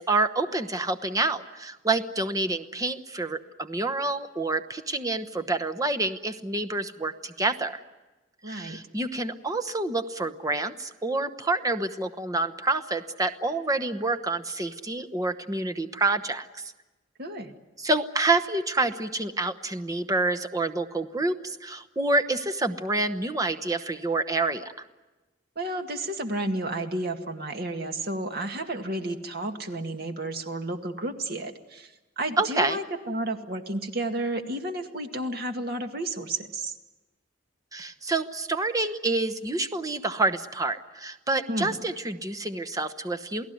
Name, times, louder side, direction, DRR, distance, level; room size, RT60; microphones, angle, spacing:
voice 1, 0.0-7.8 8.5-16.6 17.8-24.8 32.4-32.8 37.7-43.4, right 2 dB, 20° right, 8 dB, 1.0 m, -28 dB
voice 2, 8.4-8.8 17.2-17.5 25.6-36.8 41.5-41.8, right 1 dB, 55° right, 5 dB, 2.0 m, -32 dB
28.5 x 17.5 x 9.3 m, 1.1 s
head